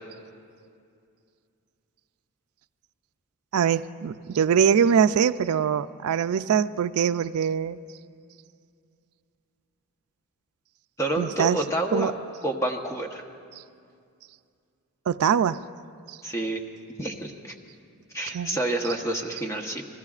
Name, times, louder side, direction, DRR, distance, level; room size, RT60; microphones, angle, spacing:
voice 1, 3.5-7.8 11.2-11.6 11.9-12.1 15.1-15.6 16.1-16.2 18.3-18.6, right 7 dB, 75° right, 13 dB, 0.4 m, -23 dB
voice 2, 11.0-12.1 12.4-13.2 16.2-16.6 17.0-17.5 18.1-19.9, right 1 dB, 15° left, 2 dB, 1.0 m, -28 dB
28.0 x 20.5 x 2.4 m, 2.4 s
head